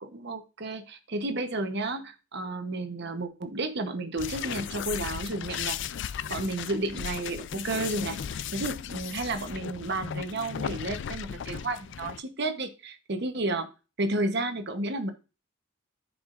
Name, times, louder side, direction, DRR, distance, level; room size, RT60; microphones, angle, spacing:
voice 1, 0.0-5.8 6.3-13.7 14.0-15.1, right 2 dB, 55° right, 8 dB, 1.0 m, -32 dB
sound 1, 4.2-12.2, left 8 dB, 60° left, 0.4 m, -36 dB
14.5 x 4.8 x 2.5 m, 0.32 s
head